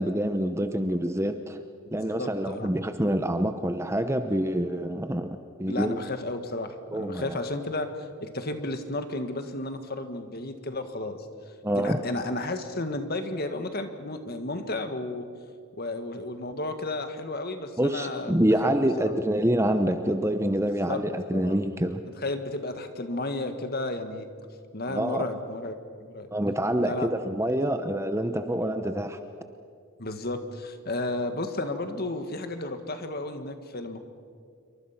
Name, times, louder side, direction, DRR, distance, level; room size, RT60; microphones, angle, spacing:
voice 1, 0.0-1.6 1.9-6.0 6.9-7.4 11.6-12.0 17.8-22.0 24.9-25.3 26.3-29.2, right 1 dB, 10° right, 8 dB, 0.8 m, -26 dB
voice 2, 2.0-2.7 5.7-11.3 11.7-15.3 15.7-18.3 18.6-19.1 20.6-21.0 21.3-21.6 22.2-24.3 24.7-26.3 26.8-27.1 30.0-34.0, left 2 dB, 45° left, 7 dB, 1.7 m, -33 dB
27.5 x 24.0 x 5.9 m, 2.2 s
head